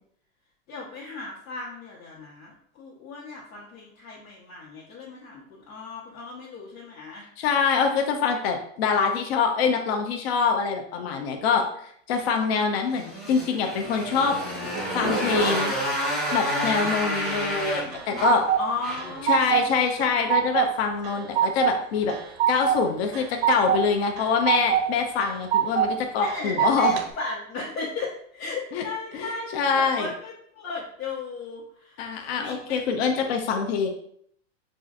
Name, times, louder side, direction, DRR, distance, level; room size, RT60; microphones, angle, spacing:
voice 1, 0.7-7.2 18.6-19.8 26.2-32.0 32.4-32.8, left 3 dB, 90° left, -8 dB, 1.2 m, -36 dB
voice 2, 7.4-14.4 14.9-15.7 16.3-18.5 19.2-22.2 22.5-26.9 28.7-28.8 29.1-30.1 32.0-33.9, left 5 dB, 55° left, 3 dB, 0.5 m, -25 dB
Motorcycle, 12.9-19.2, equal, ahead, 0.8 m, -29 dB
sound 1, 17.6-18.6 19.0-19.7 20.0-20.7 21.0-21.8 22.1-22.8 23.1-23.8 24.2-24.9 25.2-25.9 26.3-27.0, right 10 dB, 50° right, 0.5 m, -23 dB
5.1 x 2.5 x 2.4 m, 0.67 s
supercardioid pair, 170°, 39 cm